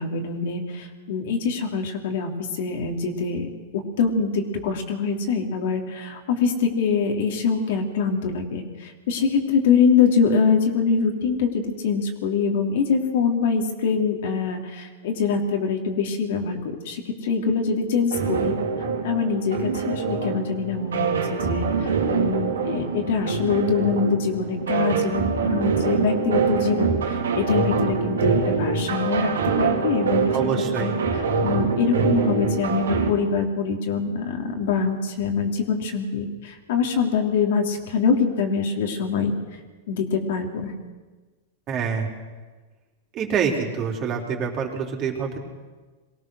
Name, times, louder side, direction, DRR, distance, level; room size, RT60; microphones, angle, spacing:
voice 1, 0.0-18.5 19.0-29.3 29.6-30.3 30.8-39.3 39.9-40.7, left 5 dB, 70° left, 2 dB, 3.2 m, -24 dB
sound 1, 18.1-33.1, right 5 dB, 90° right, 3.0 m, -24 dB
voice 2, 30.3-30.9 41.7-42.1 43.1-45.4, right 6 dB, 35° right, 0 dB, 3.9 m, -26 dB
23.0 x 17.5 x 6.4 m, 1.3 s
hypercardioid pair, 120°, 0 cm